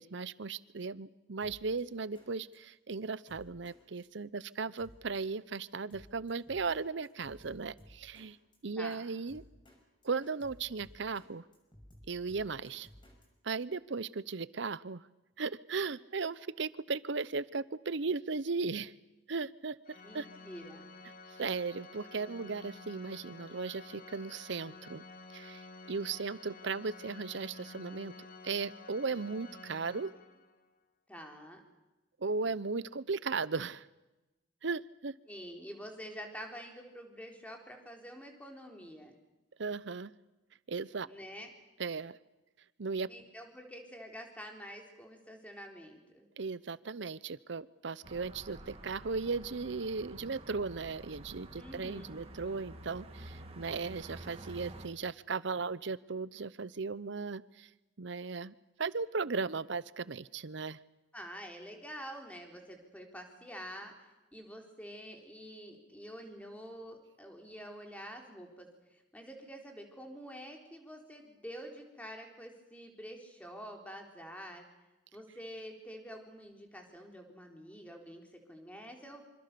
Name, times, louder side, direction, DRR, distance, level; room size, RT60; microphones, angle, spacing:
voice 1, 0.0-8.4 8.6-9.4 10.0-11.4 12.1-12.9 13.4-15.0 15.4-18.9 19.3-20.3 21.4-25.0 25.3-28.1 28.4-30.1 32.2-33.9 34.6-35.1 39.6-40.1 40.7-41.1 41.8-42.1 42.8-43.1 46.4-57.7 58.0-60.8, right 4 dB, 70° right, 18 dB, 0.8 m, -36 dB
Drum kit, 1.4-1.8 2.2-2.3 2.5-2.6 2.9-3.0 3.3-3.8 4.0-4.1 4.4-4.5 4.8-5.3 5.5-5.6 5.9-6.8 7.0-8.3 8.5-8.6 8.9-9.0 9.3-9.8 10.0-11.3 11.5-13.3, equal, 25° left, 6.5 m, -57 dB
Organ, 19.8-30.7, left 3 dB, 50° left, 2.1 m, -51 dB
voice 2, 20.0-20.9 31.1-31.6 35.3-39.1 41.0-41.5 43.1-46.3 51.5-52.2 61.1-63.9 64.3-68.7 68.9-74.6 75.1-79.2, equal, 10° left, 3 dB, 4.0 m, -47 dB
sound 1, 48.0-54.9, right 1 dB, 35° right, 2.6 m, -49 dB
26.0 x 26.0 x 6.9 m, 1.0 s
head